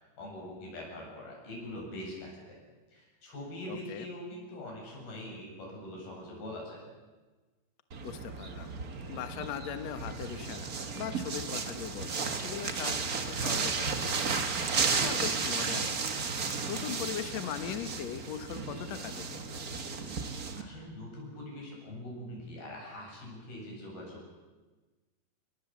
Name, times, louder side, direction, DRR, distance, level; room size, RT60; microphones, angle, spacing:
voice 1, 0.0-2.6 2.9-6.8 20.6-24.3, left 1 dB, 80° left, -1 dB, 10.0 m, -43 dB
voice 2, 3.7-4.1 8.0-8.7 9.1-16.0 16.3-19.4, left 9 dB, 60° left, 9 dB, 2.0 m, -40 dB
sound 1, 7.9-20.6, right 5 dB, 80° right, 0.8 m, -34 dB
29.5 x 21.0 x 7.3 m, 1.3 s
omnidirectional pair, 4.3 m